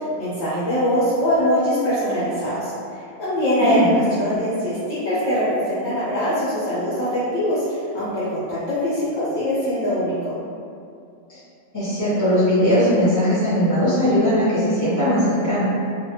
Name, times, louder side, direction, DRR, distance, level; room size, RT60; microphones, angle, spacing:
voice 1, 0.2-10.3, equal, 60° left, -10 dB, 0.8 m, -22 dB
voice 2, 11.7-15.7, equal, 15° left, -12 dB, 0.6 m, -19 dB
2.5 x 2.1 x 2.7 m, 2.5 s
omnidirectional pair, 1.6 m